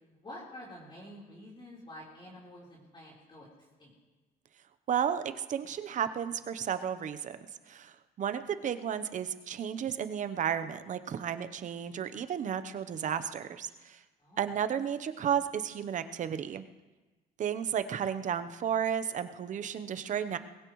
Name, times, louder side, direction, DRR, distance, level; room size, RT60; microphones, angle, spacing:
voice 1, 0.1-3.5 3.8-3.9 14.2-14.5, left 1 dB, 30° left, -5 dB, 4.1 m, -48 dB
voice 2, 4.9-7.4 7.7-14.0 14.4-16.6 17.4-20.4, right 8 dB, 45° right, 11 dB, 0.9 m, -33 dB
20.5 x 16.5 x 3.2 m, 1.2 s
cardioid pair, 110°, 17 cm